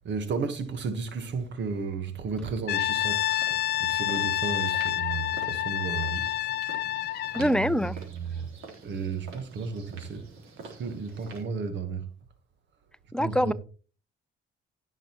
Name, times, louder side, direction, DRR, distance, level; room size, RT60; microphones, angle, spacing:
voice 1, 0.0-6.3 7.3-8.5 8.8-10.3 10.6-12.1 13.2-13.5, right 5 dB, 65° right, 1.4 m, -33 dB
Brass instrument, 2.7-7.5, left 13 dB, 55° left, 0.4 m, -28 dB
sound 1, 2.9-11.4, right 3 dB, 90° right, 3.8 m, -48 dB
voice 2, 7.3-8.0 13.1-13.5, equal, 5° left, 0.5 m, -24 dB
17.0 x 6.5 x 3.0 m
cardioid pair, 90°, 20 cm